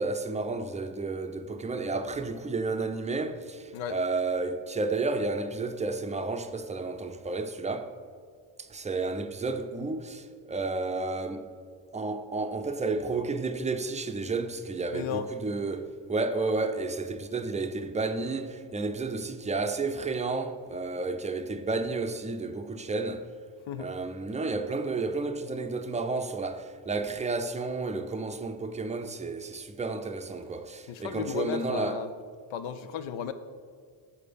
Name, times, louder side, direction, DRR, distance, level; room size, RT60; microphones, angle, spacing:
voice 1, 0.0-7.9 8.6-11.5 11.9-23.3 23.8-32.0, right 3 dB, 15° right, 0.5 m, -31 dB
voice 2, 14.9-15.3 23.7-23.9 30.9-32.1 32.5-33.3, left 8 dB, 70° left, 0.6 m, -34 dB
6.6 x 4.3 x 5.1 m
supercardioid pair, 55°, 49 cm